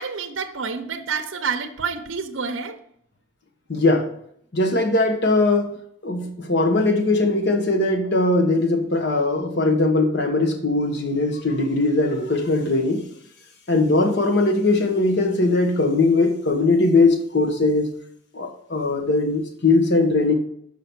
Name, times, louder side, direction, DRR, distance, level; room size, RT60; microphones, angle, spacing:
voice 1, 0.0-2.8, right 5 dB, 70° right, 9 dB, 0.8 m, -28 dB
voice 2, 3.7-4.1 4.5-5.7 6.0-13.0 13.7-17.9 18.3-20.3, left 2 dB, 55° left, 5 dB, 1.1 m, -20 dB
6.9 x 5.0 x 6.0 m, 0.69 s
head